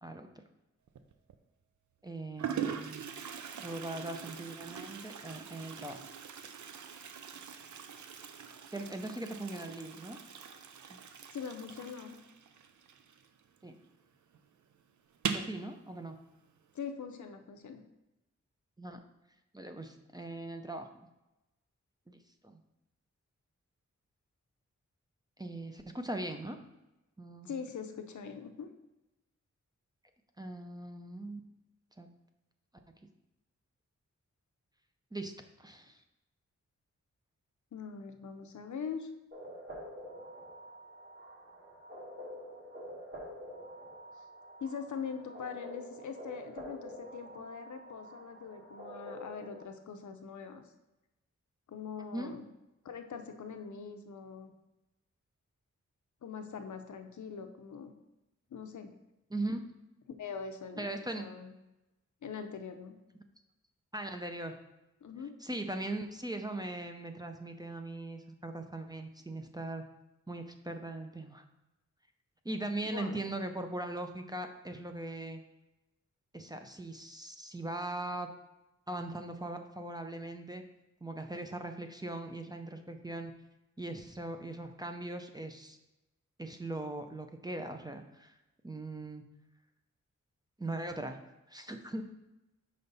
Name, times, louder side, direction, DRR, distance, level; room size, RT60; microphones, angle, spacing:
Toilet flush, 0.9-1.4 2.1-2.2 2.4-13.7 13.9-14.0 14.3-14.4 15.1-15.6, right 7 dB, 75° right, 0.5 m, -42 dB
voice 1, 2.0-3.0 3.6-6.0 8.7-10.2 10.9-11.0 13.6-13.8 15.3-16.2 18.8-19.0 19.5-21.1 22.1-22.6 25.4-26.6 27.2-27.5 30.4-31.4 32.0-32.1 35.1-35.3 35.6-36.0 52.1-52.3 59.3-59.6 60.8-61.2 63.9-64.6 65.4-69.8 70.3-71.4 72.4-75.4 76.3-78.3 78.9-80.6 81.0-83.3 83.8-85.8 86.4-88.3 88.6-89.2 90.6-91.2 91.5-92.0, right 2 dB, 15° right, 5 dB, 0.4 m, -40 dB
voice 2, 11.3-12.2 16.7-17.8 27.4-28.7 37.7-39.1 44.2-44.3 44.6-50.6 51.7-52.4 52.8-54.5 56.2-57.9 58.5-58.9 60.2-61.5 62.2-62.9 65.0-65.3 72.8-73.2, left 6 dB, 75° left, 7 dB, 0.7 m, -42 dB
sound 1, 39.3-49.6, equal, 35° right, 1.7 m, -47 dB
5.5 x 5.2 x 4.0 m, 0.96 s
wide cardioid pair, 150°, 30 cm